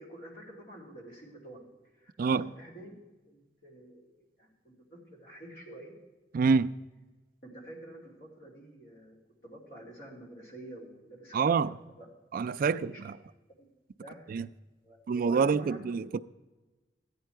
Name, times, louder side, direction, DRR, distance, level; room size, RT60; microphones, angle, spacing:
voice 1, 0.0-1.7 1.9-2.9 3.3-5.9 7.4-9.2 9.4-11.6 12.0-12.1 12.5-13.0 13.6-13.7 14.0-14.4 14.8-15.8, right 1 dB, 55° left, 2.8 m, -49 dB
voice 2, 6.3-6.7 11.3-11.7 12.3-13.1 14.3-14.5 15.1-16.2, right 5 dB, 50° right, 0.3 m, -26 dB
14.0 x 9.6 x 4.5 m
head